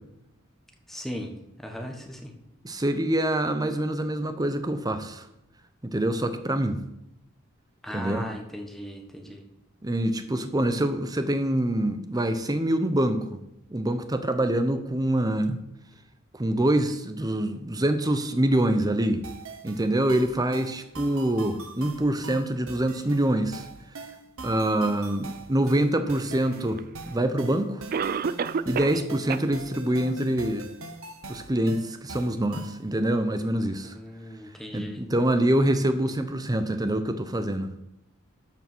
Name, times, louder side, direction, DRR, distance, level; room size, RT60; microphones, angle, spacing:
voice 1, 0.9-1.3 1.6-2.3 7.8-9.4 33.9-35.0, equal, ahead, 2 dB, 1.3 m, -37 dB
voice 2, 2.6-5.3 5.8-6.8 7.9-8.2 9.8-13.4 13.7-15.6 16.3-19.2 19.6-23.7 24.4-27.9 28.7-30.7 31.3-33.9 34.7-37.7, right 1 dB, 20° right, 9 dB, 0.8 m, -25 dB
sound 1, 19.2-32.8, right 3 dB, 70° right, 1.1 m, -42 dB
Cough, 26.8-26.9 27.9-29.0 29.3-29.4 30.0-30.1 30.6-30.7, right 6 dB, 45° right, 0.4 m, -28 dB
12.5 x 4.9 x 6.1 m, 0.86 s
head